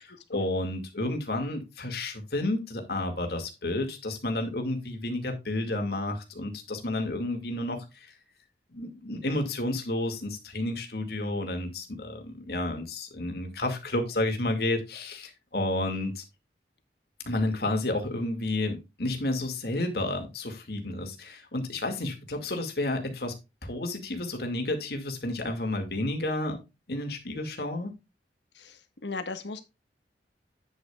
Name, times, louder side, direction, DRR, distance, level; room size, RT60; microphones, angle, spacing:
voice 1, 0.0-8.1 8.7-16.2 17.2-23.3 23.6-26.6 26.9-27.9, left 1 dB, 60° left, 2.2 m, -31 dB
voice 2, 28.5-29.6, left 3 dB, 80° left, 1.4 m, -36 dB
8.9 x 8.6 x 2.4 m
head